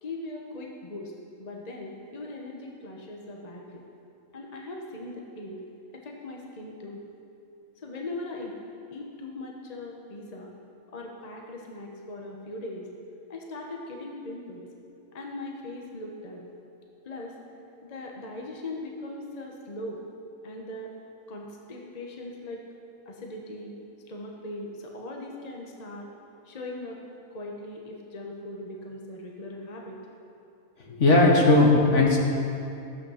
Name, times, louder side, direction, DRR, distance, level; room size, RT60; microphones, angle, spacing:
voice 1, 0.0-1.1 1.4-3.8 4.3-5.6 5.9-7.0 7.8-8.6 8.9-10.5 10.9-12.9 13.3-14.7 15.1-16.5 17.0-17.4 17.8-20.0 20.4-20.9 21.3-22.7 23.1-23.8 24.1-26.1 26.4-27.0 27.3-30.0, left 2 dB, 30° left, 0 dB, 1.1 m, -39 dB
voice 2, 30.8-32.2, left 2 dB, 60° left, -2 dB, 2.0 m, -18 dB
14.0 x 8.3 x 5.6 m, 2.6 s
omnidirectional pair, 1.5 m